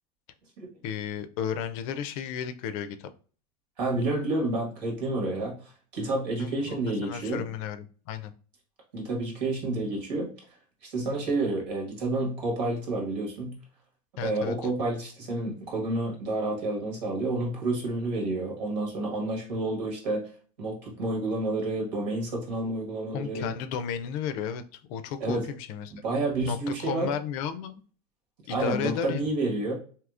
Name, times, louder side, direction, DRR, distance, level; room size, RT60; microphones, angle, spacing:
voice 1, 0.8-3.1 6.4-8.3 14.2-14.5 23.1-26.0 26.5-27.8 28.5-29.2, left 8 dB, 60° left, 11 dB, 0.4 m, -33 dB
voice 2, 3.8-7.4 8.9-10.3 10.8-13.6 14.2-20.2 20.6-23.5 25.2-25.4 25.9-27.1 28.5-29.7, right 2 dB, 85° right, 0 dB, 1.5 m, -29 dB
3.5 x 2.8 x 2.4 m, 0.41 s
supercardioid pair, 135°, 21 cm